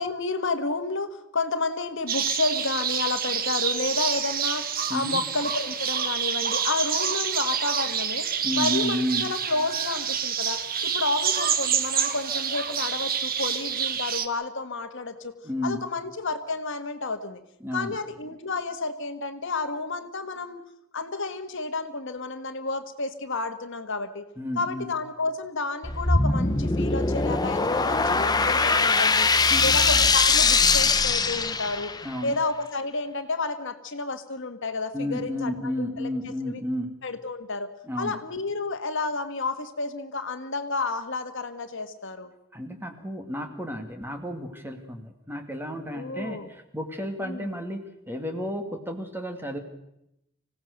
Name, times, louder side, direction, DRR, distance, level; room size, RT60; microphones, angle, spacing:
voice 1, 0.0-8.3 8.5-15.3 15.6-17.4 17.7-20.6 20.9-24.3 24.6-29.3 29.6-31.9 32.2-36.6 37.0-37.7 38.0-42.3 45.9-46.5 47.2-47.5, left 3 dB, 60° left, 8 dB, 1.7 m, -31 dB
sound 1, 2.1-14.3, right 8 dB, 45° right, 1.4 m, -27 dB
voice 2, 4.9-5.2 8.4-9.3 15.4-15.8 17.6-18.0 24.4-24.9 29.5-29.8 32.0-32.4 34.9-36.9 37.9-38.2 42.5-49.6, left 1 dB, 10° right, 6 dB, 2.2 m, -32 dB
sound 2, 25.8-32.1, left 4 dB, 20° left, 1.0 m, -22 dB
26.0 x 17.0 x 6.6 m, 0.84 s
head